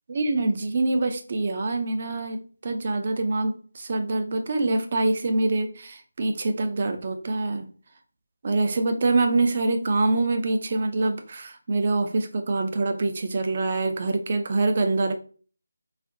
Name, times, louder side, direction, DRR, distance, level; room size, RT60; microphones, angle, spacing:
voice 1, 0.1-7.7 8.4-15.1, right 2 dB, 40° right, 6 dB, 0.5 m, -25 dB
4.1 x 2.9 x 2.6 m, 0.40 s
figure-of-eight pair, 160°, 0 cm